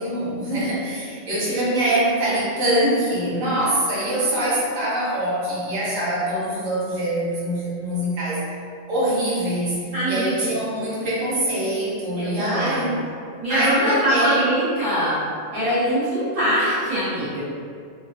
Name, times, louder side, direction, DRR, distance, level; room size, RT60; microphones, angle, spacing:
voice 1, 0.0-8.4 8.9-12.9 13.5-14.6, right 1 dB, 90° right, -7 dB, 1.3 m, -23 dB
voice 2, 9.9-10.5 12.2-12.8 13.4-15.2 15.5-17.4, equal, 50° right, -14 dB, 1.8 m, -23 dB
3.2 x 2.2 x 3.2 m, 2.3 s
omnidirectional pair, 1.3 m